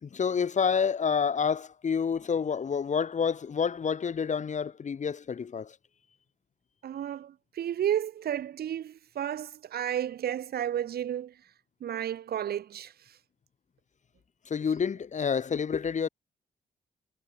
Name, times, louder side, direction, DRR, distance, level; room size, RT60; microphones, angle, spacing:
voice 1, 0.0-5.8 14.5-16.1, left 6 dB, 50° left, 4.4 m, -28 dB
voice 2, 6.8-11.3 11.8-12.9, right 10 dB, 80° right, 2.7 m, -32 dB
cardioid pair, 100°, 16 cm